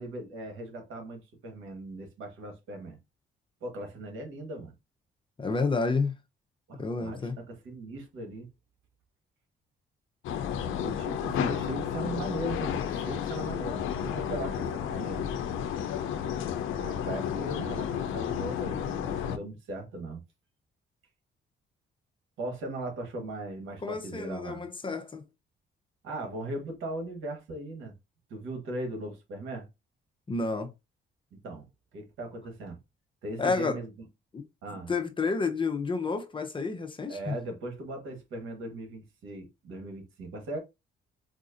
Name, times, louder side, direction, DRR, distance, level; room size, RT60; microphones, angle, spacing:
voice 1, 0.0-3.0 3.6-4.7 6.7-8.5 10.5-15.2 16.7-20.2 22.4-24.6 26.0-27.9 28.3-29.7 31.3-31.6 31.9-32.8 33.2-33.9 34.6-34.9 37.1-40.6, right 2 dB, 85° right, 1.3 m, -38 dB
voice 2, 5.4-6.1 6.8-7.4 23.8-25.3 30.3-30.7 33.4-33.8 34.3-34.4 34.9-37.3, left 4 dB, 25° left, 0.7 m, -30 dB
sound 1, 10.2-19.4, left 9 dB, 85° left, 0.5 m, -32 dB
4.1 x 2.5 x 2.5 m
cardioid pair, 90°, 20 cm